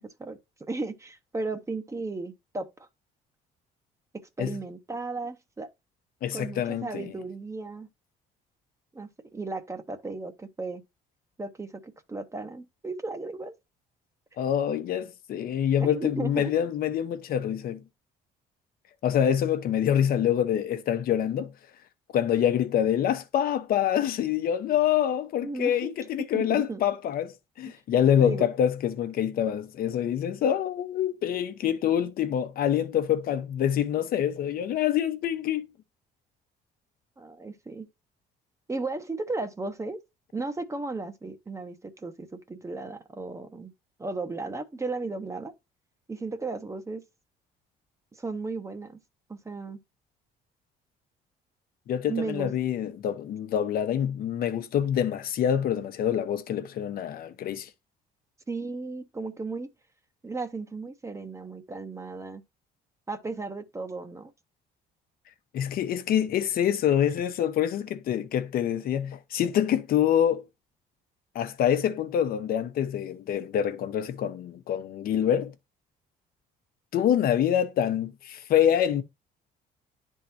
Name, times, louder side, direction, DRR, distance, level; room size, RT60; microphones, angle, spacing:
voice 1, 0.0-2.9 4.1-5.7 6.3-7.9 8.9-10.8 11.4-13.5 15.8-16.5 25.4-26.0 26.3-26.8 28.2-28.5 37.2-37.9 38.7-40.0 40.3-43.7 44.0-45.5 46.1-47.0 48.2-49.0 49.3-49.8 52.1-52.6 58.5-59.7 60.2-62.4 63.1-64.3, right 3 dB, 15° right, 0.8 m, -35 dB
voice 2, 6.2-7.1 14.4-17.8 19.0-21.5 22.1-35.7 51.9-57.7 65.5-70.4 71.3-75.5 76.9-79.0, left 9 dB, 60° left, 0.9 m, -26 dB
10.5 x 3.7 x 2.7 m
cardioid pair, 110°, 17 cm